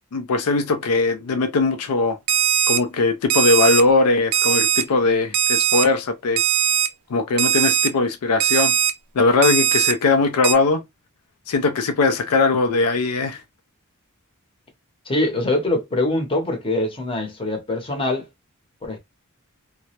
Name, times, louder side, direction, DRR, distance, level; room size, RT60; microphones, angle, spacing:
voice 1, 0.1-2.2 2.7-6.4 7.1-8.7 9.1-10.8 11.5-13.4, left 3 dB, 80° left, 0.4 m, -20 dB
Alarm, 2.3-2.8 3.3-3.8 4.3-4.8 5.3-5.8 6.4-6.9 7.4-7.9 8.4-8.9 9.4-9.9 10.4-10.5, right 10 dB, 85° right, 0.3 m, -19 dB
voice 2, 15.1-18.2 18.8-19.0, left 2 dB, 25° left, 0.7 m, -23 dB
2.2 x 2.0 x 2.8 m
head